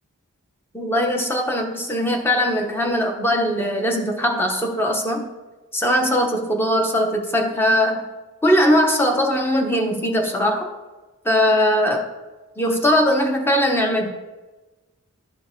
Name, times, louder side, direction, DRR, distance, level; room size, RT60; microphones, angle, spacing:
voice 1, 0.7-5.3 5.7-8.1 8.4-10.7 11.2-12.1 12.6-14.1, equal, 10° left, 2 dB, 0.7 m, -20 dB
12.0 x 4.5 x 2.6 m, 1.2 s
head